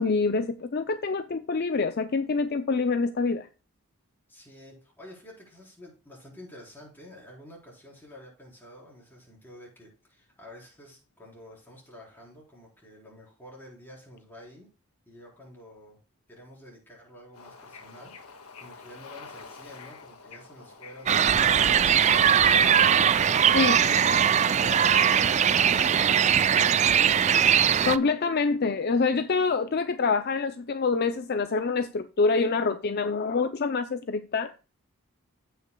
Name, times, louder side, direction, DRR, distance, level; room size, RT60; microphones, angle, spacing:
voice 1, 0.0-3.5 23.5-23.8 27.8-34.5, left 4 dB, 45° left, 0.5 m, -26 dB
voice 2, 4.3-14.7 15.0-16.0 16.3-18.1 18.6-23.1 23.3-27.1, left 1 dB, 10° left, 4.2 m, -49 dB
Bird / Ocean, 17.3-23.8, left 4 dB, 85° left, 1.7 m, -47 dB
sound 1, 21.1-28.0, right 8 dB, 30° right, 0.3 m, -20 dB
16.0 x 5.8 x 2.2 m
head